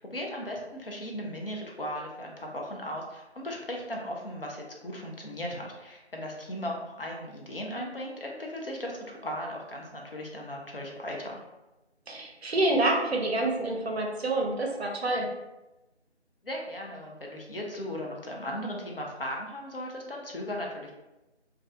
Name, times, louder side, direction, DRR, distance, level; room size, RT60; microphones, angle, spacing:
voice 1, 0.0-11.4 16.4-20.9, equal, 55° left, 0 dB, 0.5 m, -37 dB
voice 2, 12.1-15.3, right 2 dB, 65° right, 1 dB, 0.6 m, -27 dB
2.3 x 2.1 x 2.5 m, 1.0 s
figure-of-eight pair, 175°, 34 cm